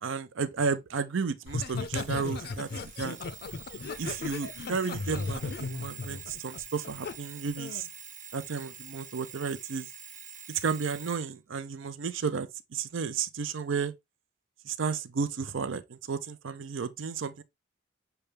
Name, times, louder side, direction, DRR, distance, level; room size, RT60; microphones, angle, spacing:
voice 1, 0.0-2.7 3.0-3.2 4.0-7.9 8.3-9.9 10.5-13.9 14.6-17.4, right 5 dB, 80° right, 0.5 m, -33 dB
Laughter, 1.5-7.1 7.6-7.9, left 4 dB, 55° left, 0.4 m, -36 dB
Alarm, 2.0-11.2, right 7 dB, 40° right, 0.9 m, -47 dB
6.7 x 2.3 x 3.3 m
head